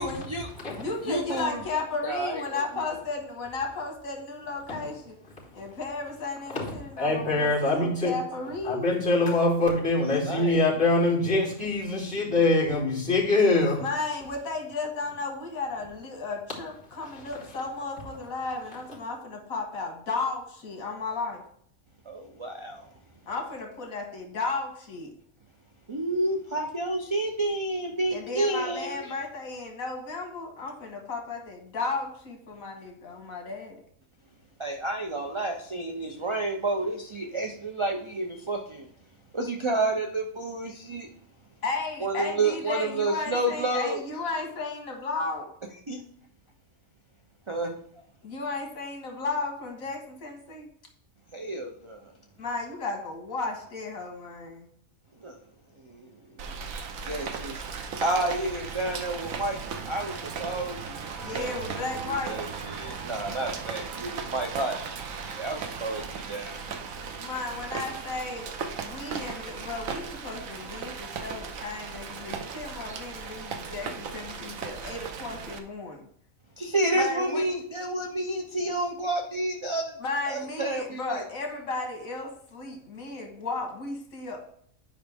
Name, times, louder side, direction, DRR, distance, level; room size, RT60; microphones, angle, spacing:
voice 1, 0.0-0.5 1.1-1.6 2.0-2.6 10.0-10.6 22.1-22.9 25.9-29.1 34.6-38.9 39.3-41.1 42.0-44.0 45.9-46.0 47.5-47.7 51.3-52.1 55.2-55.4 55.8-56.1 56.4-56.6 57.0-59.6 59.8-61.7 62.0-64.8 65.2-66.8 76.6-79.9 80.3-81.2, right 2 dB, 40° right, 3 dB, 0.4 m, -30 dB
voice 2, 0.7-5.2 5.5-9.0 13.8-21.4 23.3-25.1 28.1-33.8 41.6-45.5 48.2-50.7 52.4-54.7 61.2-62.4 67.2-68.5 68.8-76.0 77.0-77.4 80.0-84.4, left 3 dB, 85° left, 2 dB, 1.8 m, -34 dB
voice 3, 7.0-8.1 8.6-13.8, left 2 dB, 5° left, -11 dB, 3.3 m, -24 dB
Rain, 56.4-75.6, right 5 dB, 80° right, 1.2 m, -37 dB
9.2 x 5.1 x 3.5 m, 0.63 s
omnidirectional pair, 1.4 m